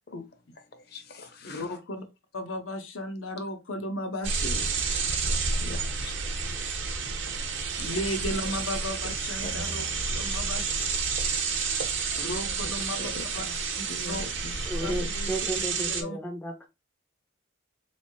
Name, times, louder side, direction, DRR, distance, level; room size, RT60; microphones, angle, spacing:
voice 1, 0.5-1.8 4.9-6.2 7.8-7.9 9.0-10.4 12.1-13.6 13.9-15.1, left 3 dB, 50° left, 0.8 m, -43 dB
voice 2, 1.4-2.0 2.3-4.7 7.8-11.0 12.2-13.4 14.1-14.2 14.8-16.2, left 1 dB, 80° left, 0.8 m, -35 dB
sound 1, 4.2-16.0, right 4 dB, 65° right, 0.8 m, -30 dB
voice 3, 14.7-16.7, right 1 dB, 10° left, 0.4 m, -33 dB
3.7 x 3.1 x 2.7 m
head